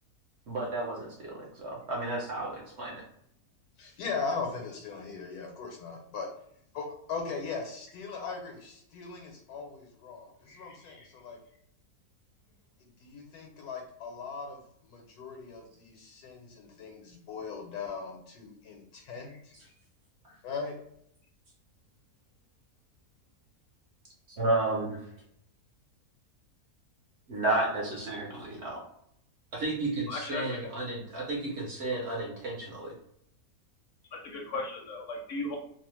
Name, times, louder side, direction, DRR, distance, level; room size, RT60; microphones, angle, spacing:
voice 1, 0.5-3.0 24.4-25.0 27.3-28.8 29.5-33.0, right 2 dB, 60° right, -2 dB, 0.7 m, -32 dB
voice 2, 3.8-6.3 6.7-11.4 13.0-19.7 20.4-20.7, left 4 dB, 85° left, 2 dB, 1.2 m, -39 dB
voice 3, 10.5-11.1 30.1-30.7 34.1-35.6, left 2 dB, 65° left, 1 dB, 0.8 m, -37 dB
2.8 x 2.0 x 3.0 m, 0.72 s
omnidirectional pair, 1.6 m